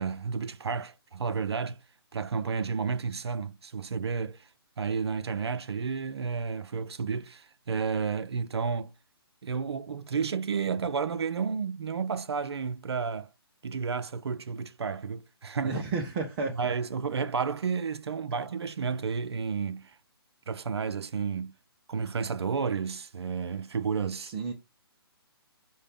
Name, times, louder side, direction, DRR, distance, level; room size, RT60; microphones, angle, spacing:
voice 1, 0.0-1.8 2.1-4.5 4.8-8.9 9.4-13.3 13.6-15.8 16.5-20.0 20.5-21.5 21.9-24.3, right 5 dB, 85° right, 0.5 m, -31 dB
voice 2, 15.6-16.7 24.3-24.5, right 4 dB, 30° right, 0.8 m, -32 dB
5.4 x 2.7 x 3.5 m
hypercardioid pair, 145°, 13 cm